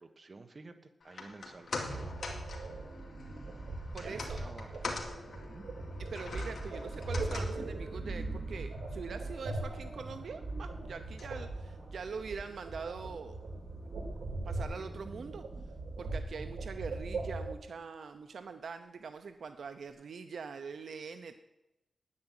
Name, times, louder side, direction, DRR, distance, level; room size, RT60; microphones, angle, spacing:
voice 1, 0.0-2.1 4.0-4.7 5.3-5.6, right 3 dB, 35° right, 7 dB, 1.3 m, -51 dB
sound 1, 1.0-13.4 13.7-13.8, left 3 dB, 60° left, 2.4 m, -45 dB
sound 2, 1.8-17.6, right 2 dB, 85° right, 2.8 m, -40 dB
voice 2, 3.9-4.4 6.0-13.4 14.4-15.4 16.0-21.4, right 5 dB, 70° right, 8 dB, 0.7 m, -43 dB
9.8 x 9.7 x 9.0 m, 0.94 s
wide cardioid pair, 125°, 0 cm